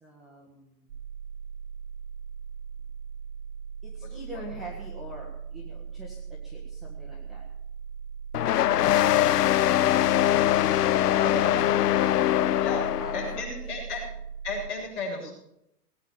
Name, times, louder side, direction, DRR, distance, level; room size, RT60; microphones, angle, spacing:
voice 1, 0.0-0.9 3.8-7.4 11.2-11.9 13.0-13.8, right 1 dB, ahead, -7 dB, 1.2 m, -44 dB
sound 1, 0.9-14.7, right 6 dB, 40° right, 2.4 m, -39 dB
sound 2, 8.3-13.4, left 13 dB, 75° left, 0.7 m, -22 dB
voice 2, 11.1-11.6 12.6-12.8 13.1-14.0 14.4-15.3, left 3 dB, 45° left, -2 dB, 7.5 m, -33 dB
19.5 x 9.5 x 7.1 m, 0.80 s
hypercardioid pair, 175°, 47 cm